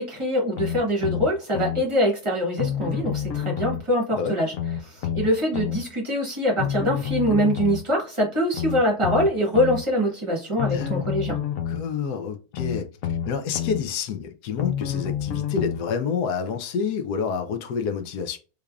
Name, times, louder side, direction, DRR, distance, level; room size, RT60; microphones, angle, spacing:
voice 1, 0.0-4.5 4.8-11.3, equal, 20° right, 1.1 m, -24 dB
sound 1, 0.6-1.8 2.6-3.8 4.5-5.8 6.6-7.8 8.5-9.8 10.6-11.8 12.5-13.8 14.6-15.8 16.5-16.6, left 9 dB, 65° left, 1.0 m, -28 dB
voice 2, 11.7-18.4, left 6 dB, 90° left, 1.2 m, -28 dB
3.6 x 3.3 x 2.3 m
omnidirectional pair, 1.6 m